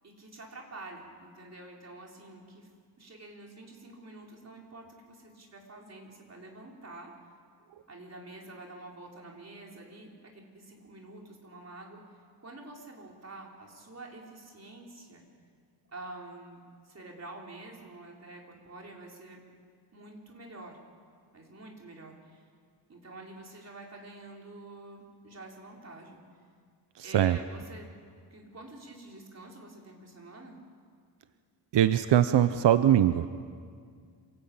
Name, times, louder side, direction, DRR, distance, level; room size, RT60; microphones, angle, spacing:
voice 1, 0.0-2.7 3.0-7.1 7.9-15.2 15.9-19.4 19.9-20.8 21.3-22.5 22.9-26.2 27.0-27.9 28.3-30.6, right 2 dB, 40° right, -1 dB, 4.4 m, -47 dB
voice 2, 27.0-27.4 31.7-33.4, right 11 dB, 85° right, 11 dB, 0.8 m, -22 dB
27.0 x 18.5 x 8.8 m, 2.1 s
wide cardioid pair, 125°, 41 cm